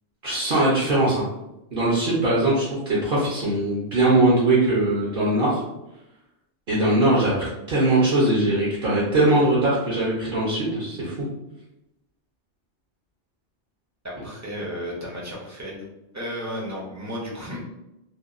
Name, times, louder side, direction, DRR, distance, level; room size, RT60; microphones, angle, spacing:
voice 1, 0.2-1.2 1.7-5.6 6.7-11.1, right 2 dB, 55° right, -6 dB, 0.8 m, -21 dB
voice 2, 14.0-15.9 16.1-17.6, equal, 20° right, -5 dB, 0.4 m, -33 dB
2.8 x 2.2 x 2.4 m, 0.90 s
omnidirectional pair, 1.2 m